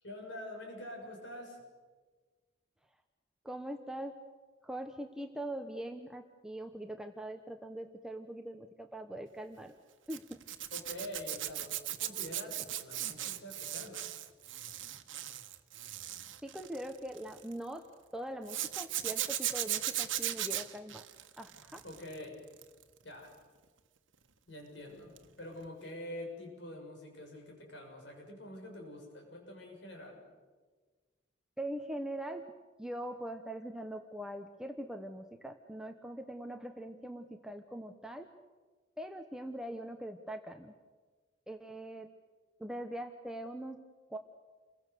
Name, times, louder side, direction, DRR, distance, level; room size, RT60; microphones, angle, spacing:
voice 1, 0.0-1.6 10.7-14.1 21.8-22.4 23.0-23.3 24.5-30.2, left 1 dB, 65° left, 1 dB, 6.6 m, -46 dB
voice 2, 3.4-4.1 4.6-9.7 10.1-10.4 16.4-17.8 18.1-21.1 21.4-21.8 31.6-32.4 32.8-38.3 39.0-40.7 41.5-42.1 42.6-43.8 44.1-44.2, right 1 dB, 5° right, 4 dB, 1.0 m, -42 dB
Zipper (clothing), 10.1-17.5 18.5-22.1 22.5-22.8 25.2-25.3 25.6-25.7, right 13 dB, 80° right, 1.4 m, -37 dB
29.0 x 22.5 x 6.8 m, 1.4 s
head